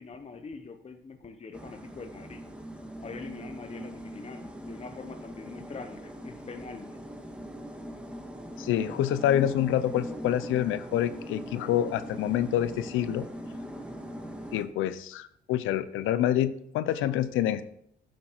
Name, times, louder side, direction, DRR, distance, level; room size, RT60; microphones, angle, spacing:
voice 1, 0.0-2.4 3.0-7.0, left 4 dB, 30° left, 6 dB, 0.9 m, -43 dB
sound 1, 1.5-14.6, equal, 5° right, 1.8 m, -41 dB
voice 2, 8.6-13.3 14.5-17.6, left 11 dB, 90° left, 14 dB, 0.7 m, -27 dB
11.0 x 7.6 x 4.6 m, 0.70 s
cardioid pair, 90°, 20 cm